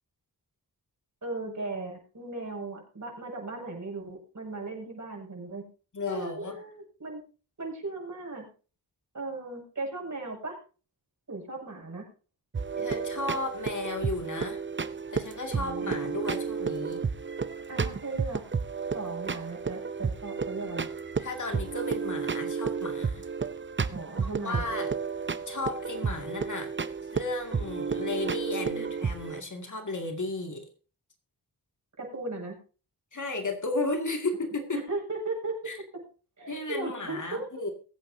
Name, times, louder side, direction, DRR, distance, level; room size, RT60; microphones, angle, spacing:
voice 1, 1.2-5.6 6.1-7.2 7.6-8.4 9.1-10.6 11.3-12.1 15.5-15.9 17.7-18.4 18.9-20.9 23.9-24.7 28.5-28.9 32.0-32.6 34.7-36.0 36.4-37.6, right 3 dB, 45° right, 0 dB, 6.6 m, -37 dB
voice 2, 5.9-6.6 12.8-14.6 15.1-17.0 21.2-23.3 24.2-24.9 25.5-26.7 27.1-30.7 33.1-34.8 35.7-35.8 36.5-37.7, left 2 dB, 45° left, 3 dB, 2.3 m, -34 dB
sound 1, 12.5-29.4, right 5 dB, 30° right, 0.6 m, -32 dB
22.0 x 8.9 x 2.8 m, 0.36 s
wide cardioid pair, 85°, 40 cm